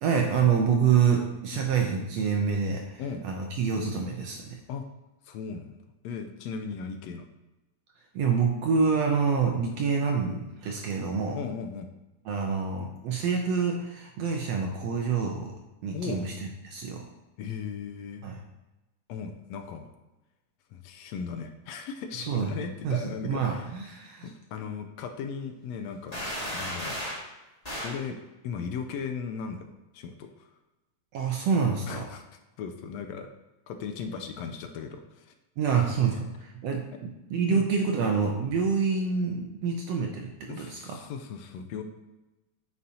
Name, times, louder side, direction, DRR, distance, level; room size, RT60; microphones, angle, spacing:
voice 1, 0.0-4.6 8.1-11.4 12.2-15.5 15.8-16.3 16.6-17.0 18.2-18.4 22.2-22.5 22.8-24.3 31.1-32.1 35.6-41.0, right 6 dB, 70° right, 1 dB, 1.7 m, -27 dB
voice 2, 5.2-5.7 6.0-7.2 11.3-11.9 15.9-16.2 17.4-18.3 19.1-19.9 20.7-23.7 24.2-26.3 26.5-27.0 27.8-28.2 28.4-29.7 29.9-30.5 31.8-32.2 32.6-33.3 33.7-35.3 35.8-36.2 37.5-37.6 40.5-41.8, left 6 dB, 80° left, 6 dB, 1.6 m, -37 dB
sound 1, 26.1-27.3 27.6-28.0, equal, 15° left, 1.7 m, -34 dB
9.3 x 6.9 x 2.8 m, 1.1 s
omnidirectional pair, 3.4 m